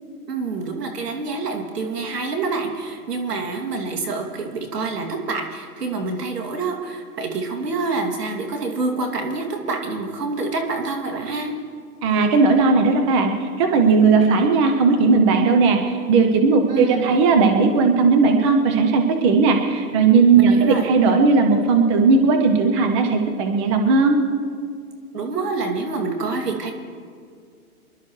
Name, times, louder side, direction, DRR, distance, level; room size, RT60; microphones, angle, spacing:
voice 1, 0.3-11.5 16.7-17.2 20.4-20.9 25.1-26.7, right 3 dB, 80° right, 2 dB, 2.7 m, -27 dB
voice 2, 12.0-24.2, right 4 dB, 20° right, 4 dB, 0.7 m, -17 dB
25.5 x 12.0 x 3.2 m, 2.2 s
hypercardioid pair, 145°, 46 cm